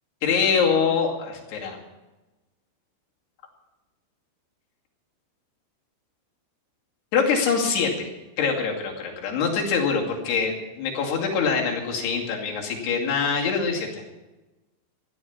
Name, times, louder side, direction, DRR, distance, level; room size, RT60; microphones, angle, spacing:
voice 1, 0.2-1.8 7.1-8.1 8.4-14.0, left 5 dB, 65° left, -1 dB, 4.4 m, -24 dB
15.5 x 12.0 x 7.2 m, 1.1 s
omnidirectional pair, 5.2 m